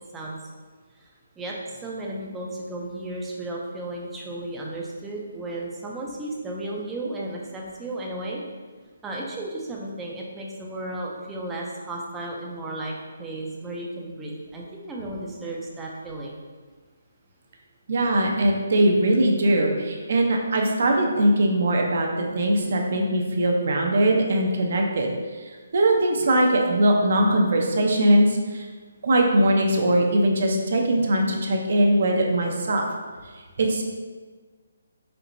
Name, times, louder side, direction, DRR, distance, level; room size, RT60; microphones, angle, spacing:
voice 1, 1.4-8.4 9.0-12.9 13.2-16.4, right 1 dB, 10° right, -3 dB, 0.5 m, -34 dB
voice 2, 17.9-25.1 25.4-28.7 29.0-32.9 33.6-33.8, right 1 dB, 50° right, 1 dB, 0.6 m, -21 dB
4.5 x 4.1 x 2.6 m, 1.5 s
hypercardioid pair, 170°, 0 cm